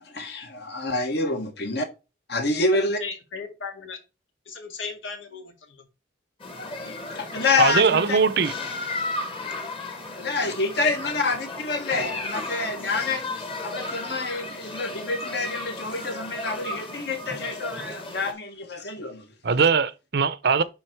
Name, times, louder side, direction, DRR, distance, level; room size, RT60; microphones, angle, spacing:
voice 1, 0.0-1.9 2.3-3.0 7.1-8.2 10.2-13.2 13.6-19.3, left 3 dB, 60° left, 1.6 m, -27 dB
voice 2, 2.7-4.0 4.5-5.8 11.0-11.1, left 5 dB, 85° left, 1.9 m, -37 dB
sound 1, 6.4-18.3, left 2 dB, 30° left, 1.4 m, -34 dB
voice 3, 7.6-8.5 19.4-20.6, right 5 dB, 55° right, 0.6 m, -21 dB
10.0 x 3.7 x 4.6 m
head